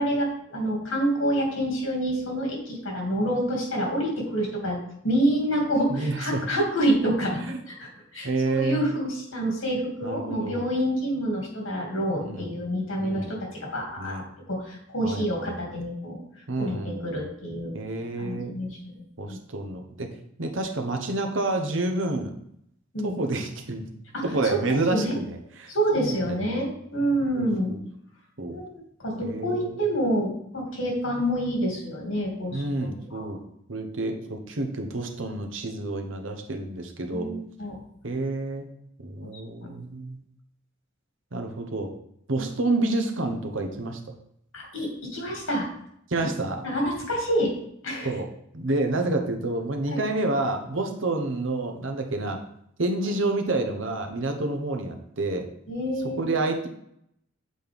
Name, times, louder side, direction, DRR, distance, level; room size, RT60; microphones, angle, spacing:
voice 1, 0.0-4.8 5.0-7.4 7.7-14.2 14.5-16.2 16.6-17.7 18.2-18.9 19.3-19.4 22.9-23.1 24.1-24.2 24.7-25.2 25.7-27.7 28.5-32.6 33.1-33.2 37.1-37.8 39.6-39.7 44.5-45.7 46.6-47.5 47.8-48.1 49.9-50.0 55.7-56.3, equal, 75° left, 0 dB, 2.3 m, -27 dB
voice 2, 5.9-6.4 7.3-7.6 8.2-8.8 10.0-10.6 12.2-12.7 13.0-13.4 14.0-14.2 15.0-15.8 16.5-17.2 17.7-18.5 19.2-20.1 20.4-22.3 23.0-23.9 24.2-26.6 27.4-27.8 28.4-28.6 29.2-29.8 32.5-33.4 33.7-37.3 38.0-38.7 39.0-40.2 41.3-41.9 42.3-44.0 46.1-46.6 48.0-48.3 48.5-52.4 52.8-55.5 56.2-56.7, right 2 dB, 70° right, 5 dB, 1.0 m, -29 dB
7.7 x 4.2 x 3.5 m, 0.72 s
head